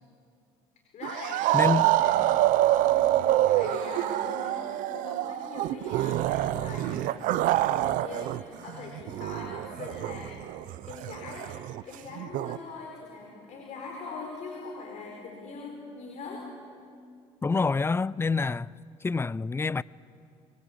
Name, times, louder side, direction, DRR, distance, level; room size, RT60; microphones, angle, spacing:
voice 1, 0.9-10.6 10.9-11.6 11.8-16.5, left 4 dB, 60° left, 4.6 m, -42 dB
Zombie Monster growl and scream, 1.0-8.4 8.7-12.6, right 14 dB, 70° right, 0.8 m, -26 dB
voice 2, 1.5-1.9 17.4-18.7 19.0-19.8, left 4 dB, 15° left, 0.5 m, -26 dB
25.0 x 23.0 x 8.4 m
supercardioid pair, 75°, 14 cm